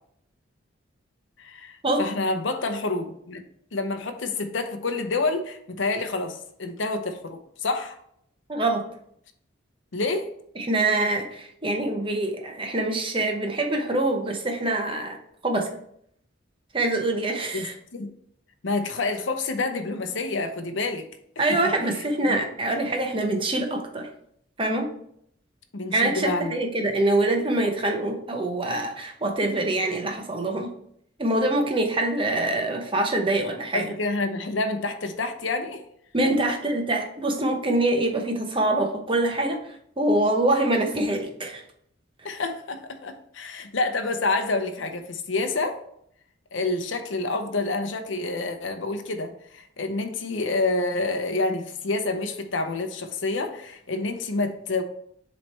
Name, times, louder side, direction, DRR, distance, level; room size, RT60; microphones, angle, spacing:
voice 1, 1.4-3.4 3.7-8.0 9.9-10.3 17.5-17.6 17.9-18.1 18.6-21.1 22.3-22.4 25.7-26.5 33.7-35.8 42.2-45.8 46.5-54.8, left 3 dB, 70° left, 6 dB, 0.7 m, -28 dB
voice 2, 8.5-8.8 10.6-15.2 15.4-15.7 16.7-17.7 21.4-24.1 24.6-24.9 25.9-30.7 31.2-33.9 36.1-41.6, right 2 dB, 25° right, 3 dB, 0.9 m, -25 dB
7.5 x 3.2 x 4.3 m, 0.69 s
head